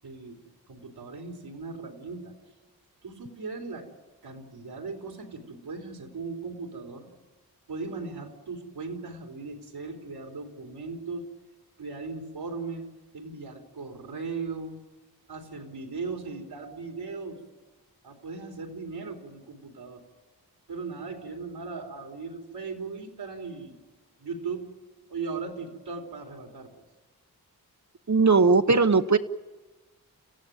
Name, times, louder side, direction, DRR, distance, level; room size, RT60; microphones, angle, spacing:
voice 1, 0.0-0.4 0.7-2.4 3.0-3.9 4.2-7.1 7.7-11.3 11.8-12.9 13.1-14.8 15.3-17.4 18.0-20.0 20.7-23.8 24.2-24.7 25.1-26.7, right 4 dB, 85° right, 2 dB, 3.5 m, -38 dB
voice 2, 28.1-29.2, right 4 dB, 45° right, 8 dB, 1.0 m, -19 dB
30.0 x 15.0 x 9.3 m, 1.2 s
cardioid pair, 45°, 38 cm